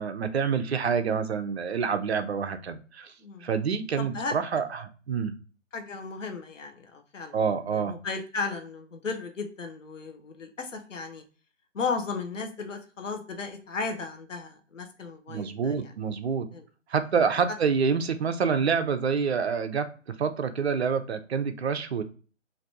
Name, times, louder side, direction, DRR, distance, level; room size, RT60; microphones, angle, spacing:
voice 1, 0.0-3.1 3.4-5.3 7.3-8.0 15.3-16.5 16.9-19.9 20.2-22.0, right 6 dB, 55° right, 9 dB, 0.5 m, -27 dB
voice 2, 4.0-4.3 5.7-7.4 7.7-11.2 11.7-15.7 16.5-16.6, left 4 dB, 75° left, 5 dB, 0.8 m, -35 dB
3.3 x 2.5 x 2.6 m, 0.37 s
figure-of-eight pair, 145°, 38 cm